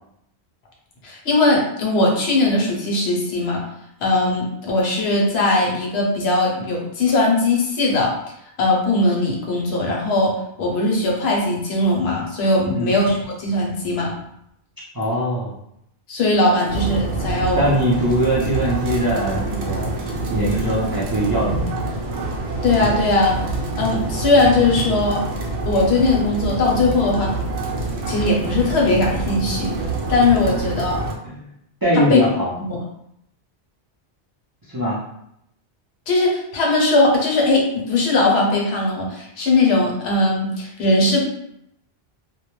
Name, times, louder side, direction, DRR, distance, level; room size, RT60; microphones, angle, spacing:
voice 1, 1.0-3.6 4.0-8.1 8.6-14.1 16.1-17.7 22.6-23.4 23.8-25.2 25.6-27.3 28.1-29.7 30.1-31.0 31.9-32.2 32.6-32.8 36.1-41.2, left 2 dB, 75° left, -1 dB, 0.9 m, -19 dB
voice 2, 14.9-15.5 17.5-21.7 30.4-30.5 31.2-31.5 31.8-32.5 34.7-35.0, equal, 30° right, -8 dB, 0.4 m, -22 dB
sound 1, 16.7-31.1, right 2 dB, 85° right, 0.8 m, -26 dB
2.2 x 2.1 x 3.0 m, 0.76 s
omnidirectional pair, 1.1 m